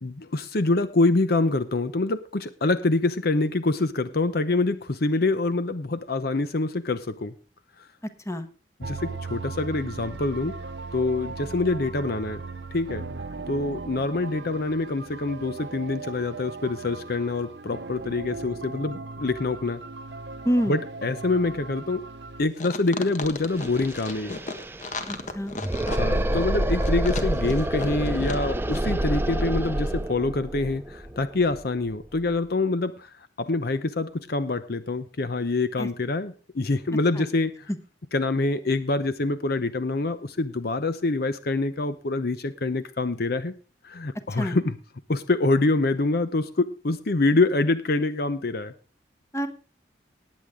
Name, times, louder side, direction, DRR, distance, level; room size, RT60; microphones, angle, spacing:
voice 1, 0.0-7.3 8.8-10.5 10.9-12.4 12.7-13.1 13.5-19.8 20.7-22.0 22.4-24.4 25.9-37.5 38.1-43.5 43.8-44.8 45.1-48.7, left 2 dB, 60° left, 12 dB, 0.8 m, -25 dB
voice 2, 8.0-8.5 20.4-20.8 25.0-25.5 35.8-35.9 37.2-37.3 44.4-44.6 49.3-49.5, equal, 15° left, 9 dB, 1.3 m, -27 dB
sound 1, 8.8-22.5, right 3 dB, 70° right, 0.8 m, -38 dB
sound 2, 22.6-28.5 28.7-28.8, left 3 dB, 45° left, 1.5 m, -35 dB
sound 3, 23.2-23.3 23.5-32.3, right 1 dB, 15° right, 0.7 m, -28 dB
18.5 x 8.2 x 3.7 m, 0.37 s
head